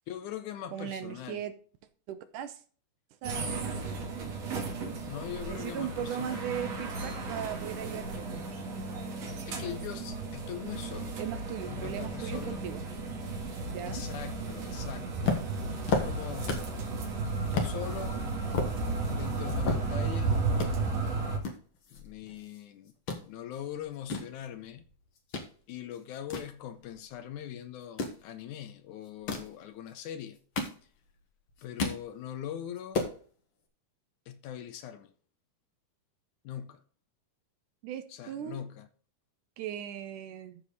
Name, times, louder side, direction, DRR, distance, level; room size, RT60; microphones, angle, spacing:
voice 1, 0.1-1.5 5.1-6.5 9.5-11.2 11.7-12.7 13.9-15.3 15.9-16.6 17.5-18.3 19.1-20.4 21.9-22.9 23.2-24.8 25.7-30.4 31.6-33.1 34.3-35.1 36.4-36.8 38.1-38.9, left 10 dB, 75° left, 2.1 m, -41 dB
voice 2, 0.7-1.5 2.1-2.6 3.2-3.8 5.5-8.4 11.2-12.9 13.7-14.0 37.8-38.6 39.6-40.6, right 10 dB, 75° right, 2.3 m, -38 dB
sound 1, 3.2-21.4, right 3 dB, 55° right, 2.7 m, -34 dB
sound 2, 15.3-16.8 17.1-17.2 17.5-17.7 18.2-20.2 20.5-20.7 21.4-22.6 22.9-23.2 23.8-25.5 25.9-27.2 27.8-28.2 29.1-29.6 30.2-31.2 31.5-32.0 32.4-32.5 32.8-33.2, left 4 dB, 50° left, 2.0 m, -33 dB
14.0 x 4.7 x 4.1 m
omnidirectional pair, 3.8 m